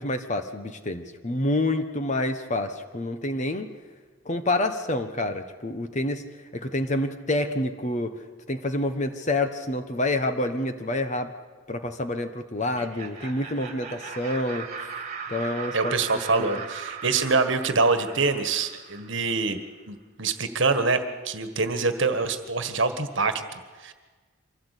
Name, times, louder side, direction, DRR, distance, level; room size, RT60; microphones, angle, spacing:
voice 1, 0.0-3.7 4.2-6.2 6.5-8.2 8.5-11.3 11.7-14.7 15.3-15.9 16.4-16.6, left 1 dB, 35° left, 8 dB, 1.2 m, -28 dB
Laughter, 12.6-19.4, right 5 dB, 30° right, 2.1 m, -39 dB
voice 2, 15.7-19.6 19.9-23.9, right 4 dB, 55° right, 9 dB, 1.6 m, -25 dB
25.0 x 16.5 x 8.3 m, 1.4 s
head